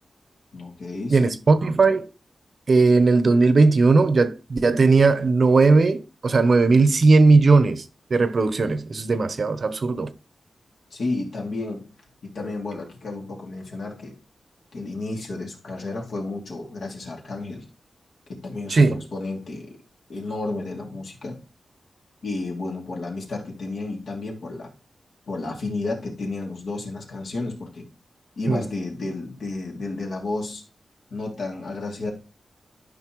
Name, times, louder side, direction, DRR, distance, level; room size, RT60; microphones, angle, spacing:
voice 1, 0.5-1.3 10.9-11.9 12.2-14.2 14.7-17.6 18.3-19.8 20.1-21.4 22.2-24.7 25.3-27.9 28.4-30.6 31.1-32.1, left 2 dB, 75° left, 2.7 m, -32 dB
voice 2, 1.1-2.1 2.7-7.8 8.1-10.1 18.7-19.0 28.5-28.6, right 3 dB, 50° right, 0.8 m, -18 dB
12.5 x 5.4 x 3.1 m
wide cardioid pair, 115°, 0 cm